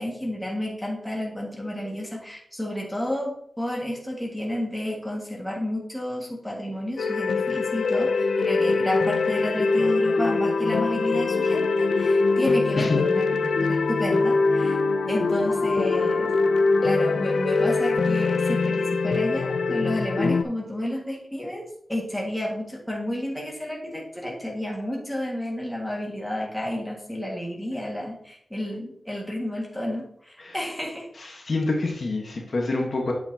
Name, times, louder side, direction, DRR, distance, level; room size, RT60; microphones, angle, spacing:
voice 1, 0.0-14.8 15.1-16.3 16.8-21.6 21.9-31.1, left 1 dB, 5° left, -2 dB, 1.9 m, -31 dB
sound 1, 7.0-20.4, left 3 dB, 80° left, 0.5 m, -23 dB
voice 2, 31.2-33.1, left 3 dB, 50° left, 0 dB, 1.3 m, -27 dB
8.3 x 6.9 x 2.9 m, 0.70 s
wide cardioid pair, 135°, 0 cm